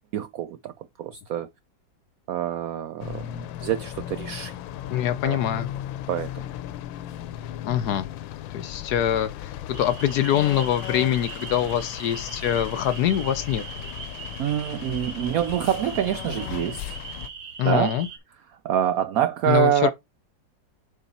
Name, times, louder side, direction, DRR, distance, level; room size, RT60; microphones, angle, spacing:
voice 1, 0.1-1.5 2.3-4.5 5.2-5.4 6.1-6.5 14.4-17.0 17.6-18.0 18.6-19.9, right 11 dB, 80° right, 0.8 m, -26 dB
sound 1, 3.0-17.3, left 12 dB, 90° left, 1.4 m, -36 dB
voice 2, 4.9-5.7 7.6-8.1 8.5-13.6 17.6-18.1 19.5-19.9, left 10 dB, 65° left, 1.1 m, -24 dB
sound 2, 9.7-18.2, right 6 dB, 55° right, 1.5 m, -40 dB
6.7 x 4.6 x 4.2 m
omnidirectional pair, 2.0 m